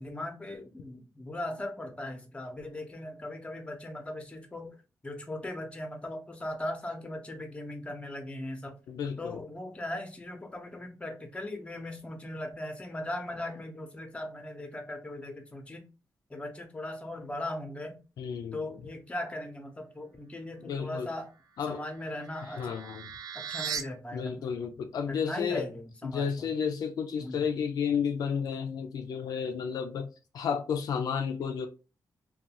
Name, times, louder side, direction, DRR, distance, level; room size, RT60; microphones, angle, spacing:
voice 1, 0.0-4.7 5.0-8.8 9.2-15.8 16.3-18.0 18.5-21.3 21.7-22.8 23.3-24.5 25.1-26.5 27.2-27.4, left 1 dB, 20° left, 0.7 m, -39 dB
voice 2, 8.9-9.4 18.2-18.8 20.6-21.1 21.6-21.8 22.4-23.1 24.1-25.6 26.0-30.1 30.3-31.7, left 7 dB, 80° left, 0.4 m, -32 dB
sound 1, 21.6-23.8, right 7 dB, 65° right, 0.4 m, -39 dB
2.5 x 2.3 x 2.9 m
cardioid pair, 90°, 7 cm